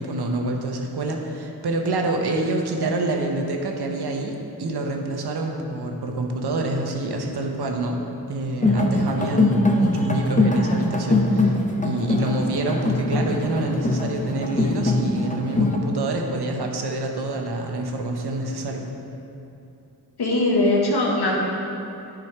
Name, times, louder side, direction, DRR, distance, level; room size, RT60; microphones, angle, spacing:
voice 1, 0.0-11.6 11.8-18.9, right 2 dB, 75° right, 2 dB, 1.1 m, -27 dB
sound 1, 8.6-15.8, left 2 dB, 20° left, 0.9 m, -22 dB
voice 2, 20.2-21.4, left 2 dB, 75° left, -3 dB, 1.8 m, -20 dB
9.4 x 5.1 x 4.8 m, 2.7 s
cardioid pair, 50°, 39 cm